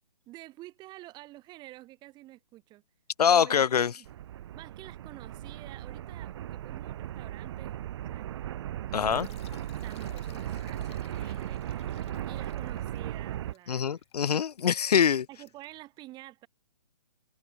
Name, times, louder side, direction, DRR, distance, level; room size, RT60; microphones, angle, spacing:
voice 1, 0.3-2.8 3.3-4.1 4.6-7.7 8.0-8.3 8.9-9.6 9.8-11.6 12.3-14.0 15.3-16.5, right 17 dB, 20° right, 5.6 m, -49 dB
voice 2, 3.2-3.9 8.9-9.3 13.7-15.3, left 7 dB, 90° left, 0.5 m, -24 dB
sound 1, 4.0-13.5, right 12 dB, 45° right, 0.6 m, -37 dB
Liquid, 9.0-15.8, left 13 dB, 45° left, 6.1 m, -57 dB
hypercardioid pair, 145°, 19 cm